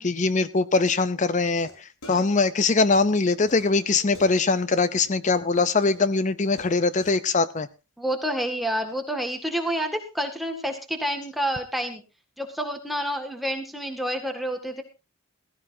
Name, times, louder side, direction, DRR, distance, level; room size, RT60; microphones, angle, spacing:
voice 1, 0.0-7.7, left 3 dB, 35° left, 15 dB, 0.6 m, -22 dB
sound 1, 0.7-0.8 1.3-1.7 2.0-5.1 5.6-7.1, left 1 dB, 90° left, 5.1 m, -47 dB
voice 2, 8.0-12.0 12.4-14.8, equal, ahead, 4 dB, 1.9 m, -29 dB
16.0 x 15.5 x 2.7 m, 0.29 s
head